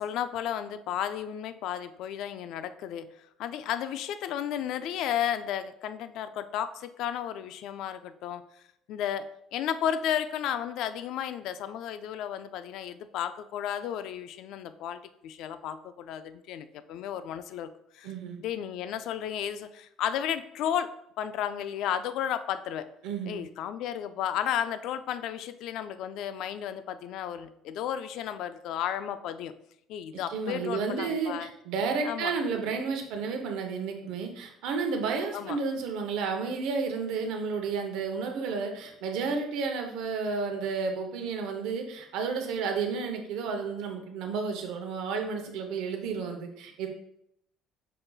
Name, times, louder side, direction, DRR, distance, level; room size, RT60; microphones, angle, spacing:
voice 1, 0.0-3.1 3.4-8.4 8.9-17.7 17.9-18.1 18.4-22.9 23.2-29.5 29.9-31.5 32.0-32.3 35.3-35.6, left 10 dB, 65° left, 12 dB, 0.3 m, -33 dB
voice 2, 18.0-18.4 23.0-23.4 30.3-46.9, right 5 dB, 80° right, 4 dB, 0.8 m, -31 dB
5.4 x 3.9 x 2.3 m, 0.76 s
cardioid pair, 155°, 0 cm